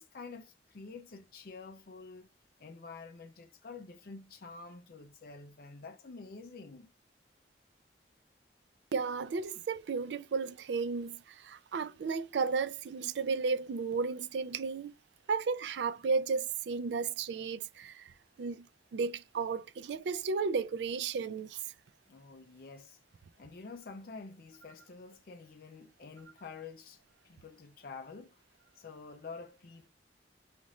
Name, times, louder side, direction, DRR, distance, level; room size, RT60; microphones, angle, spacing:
voice 1, 0.0-2.3 2.6-6.9 22.1-23.0 23.4-28.4 28.8-29.9, left 4 dB, 55° left, 0.5 m, -48 dB
voice 2, 8.9-14.9 15.3-18.1 18.4-18.6 18.9-21.6, right 5 dB, 80° right, 0.4 m, -33 dB
5.2 x 2.5 x 3.0 m
head